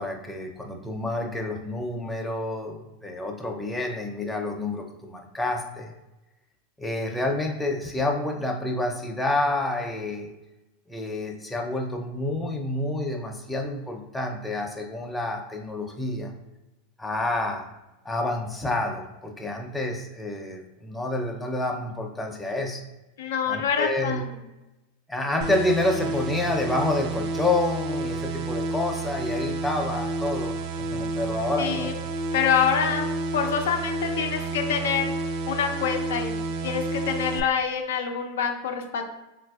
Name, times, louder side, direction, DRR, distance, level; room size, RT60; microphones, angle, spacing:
voice 1, 0.0-5.9 6.8-10.3 10.9-16.3 17.0-17.7 18.0-22.8 23.5-24.2 25.1-30.6 30.9-31.9, left 2 dB, 5° left, 1 dB, 0.5 m, -28 dB
voice 2, 23.2-24.2 31.6-31.9 32.3-35.1 35.5-36.4 36.6-39.0, left 7 dB, 80° left, 4 dB, 0.5 m, -26 dB
sound 1, 25.4-37.4, right 3 dB, 50° right, 0.3 m, -30 dB
3.8 x 2.5 x 2.4 m, 1.0 s
hypercardioid pair, 105°, 0 cm